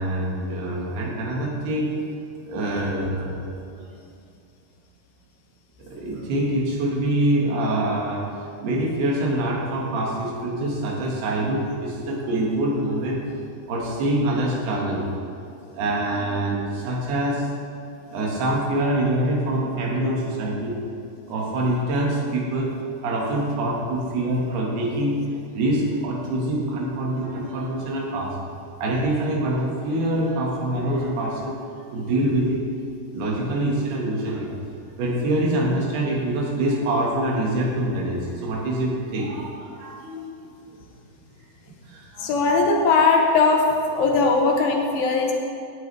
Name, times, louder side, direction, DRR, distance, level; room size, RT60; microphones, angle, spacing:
voice 1, 0.0-2.0 2.5-3.5 5.8-13.2 13.7-15.1 15.7-17.5 18.1-20.8 21.3-22.8 23.0-25.3 25.6-28.4 28.8-31.6 31.9-32.6 33.1-34.6 35.0-40.2 41.9-42.3, right 1 dB, 80° right, -3 dB, 3.8 m, -25 dB
voice 2, 42.2-43.6 44.0-45.3, left 4 dB, 75° left, 1 dB, 2.6 m, -19 dB
16.0 x 9.8 x 3.4 m, 2.6 s
omnidirectional pair, 4.6 m